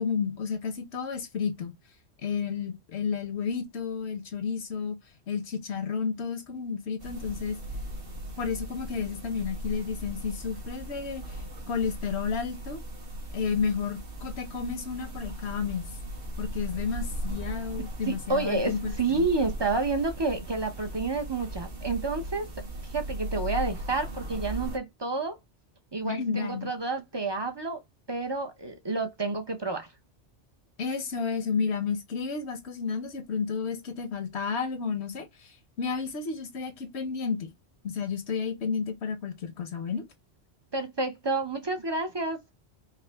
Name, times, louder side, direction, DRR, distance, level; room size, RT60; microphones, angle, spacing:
voice 1, 0.0-1.8 2.2-5.0 5.3-7.6 8.4-11.2 11.7-12.8 13.3-15.9 16.4-19.3 26.0-26.7 30.8-37.5 37.8-40.0, left 6 dB, 75° left, 1.1 m, -31 dB
sound 1, 7.0-24.8, right 1 dB, 60° right, 1.4 m, -38 dB
voice 2, 18.0-22.5 22.9-25.4 25.9-27.8 28.1-29.9 40.7-42.4, right 3 dB, 30° right, 0.6 m, -29 dB
4.9 x 2.0 x 3.4 m
omnidirectional pair, 1.1 m